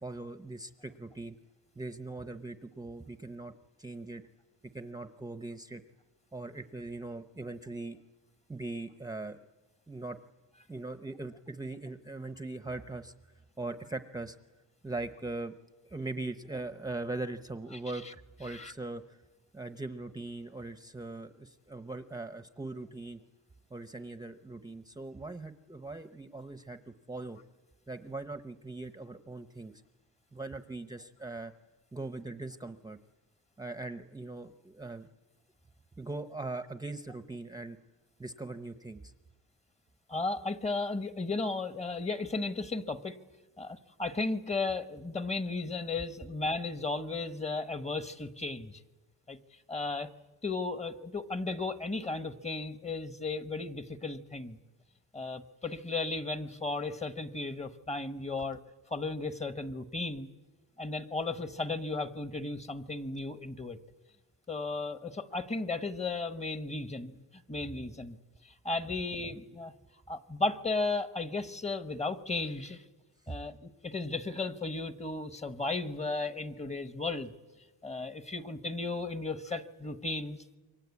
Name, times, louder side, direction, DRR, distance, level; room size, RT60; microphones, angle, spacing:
voice 1, 0.0-1.3 1.8-3.5 3.8-4.2 4.7-5.8 6.3-8.0 8.5-9.4 9.9-10.2 10.7-13.1 13.6-14.4 14.8-15.5 15.8-18.0 18.4-19.2 19.5-23.2 23.7-27.4 27.9-29.7 30.3-31.5 31.9-33.0 33.6-35.1 36.0-37.8 38.2-39.1 73.3-73.4, right 2 dB, 10° right, 10 dB, 0.8 m, -40 dB
voice 2, 40.1-43.2 43.6-48.8 49.3-49.4 49.7-50.1 50.4-54.6 55.1-58.6 58.9-60.3 60.8-63.8 64.5-67.1 67.5-68.2 68.4-69.7 70.1-72.8 73.3-77.3 77.8-80.4, left 3 dB, 20° left, 11 dB, 1.2 m, -35 dB
28.0 x 24.0 x 8.4 m, 1.2 s
cardioid pair, 140°, 36 cm